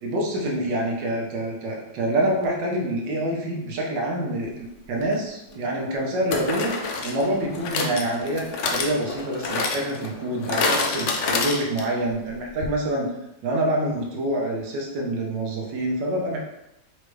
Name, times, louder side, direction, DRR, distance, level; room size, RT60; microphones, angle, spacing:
voice 1, 0.0-6.7 7.0-13.1 13.4-16.4, right 1 dB, 75° right, -1 dB, 1.6 m, -26 dB
sound 1, 5.0-5.1 6.3-12.1 12.3-12.4 12.6-12.7, left 3 dB, 85° left, 0.6 m, -28 dB
4.9 x 3.2 x 3.2 m, 0.89 s
omnidirectional pair, 2.0 m